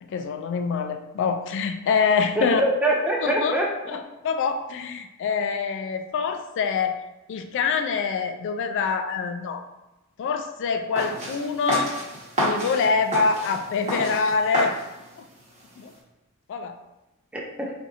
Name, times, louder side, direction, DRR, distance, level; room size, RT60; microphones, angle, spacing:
voice 1, 0.0-2.6 3.2-3.6 3.9-7.0 7.3-9.6 10.2-12.0 12.4-14.7 15.2-15.3 15.8-15.9 16.5-16.8, left 5 dB, 55° left, 8 dB, 0.3 m, -25 dB
voice 2, 2.4-4.0 17.3-17.7, right 1 dB, 5° right, -2 dB, 0.5 m, -24 dB
sound 1, 11.0-16.0, equal, 35° right, 1.0 m, -30 dB
4.0 x 2.6 x 2.4 m, 1.0 s
head